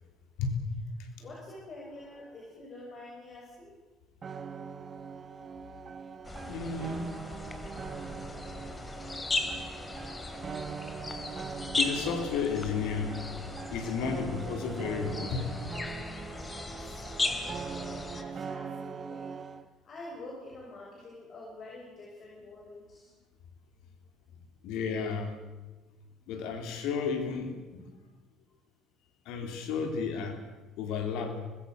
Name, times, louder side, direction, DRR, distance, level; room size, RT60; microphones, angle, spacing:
voice 1, 1.2-3.7 16.5-19.4 19.8-23.1, left 2 dB, 45° left, -2 dB, 7.1 m, -47 dB
sound 1, 4.2-19.6, right 6 dB, 40° right, 1.3 m, -42 dB
sound 2, 6.2-18.2, left 3 dB, 25° left, 3.0 m, -37 dB
voice 2, 6.5-7.1 11.8-13.2 13.7-15.5 24.6-25.4 26.3-27.9 29.3-30.4 30.8-31.4, left 5 dB, 70° left, 5 dB, 3.7 m, -32 dB
25.5 x 21.0 x 6.7 m, 1.2 s
hypercardioid pair, 60°, 0 cm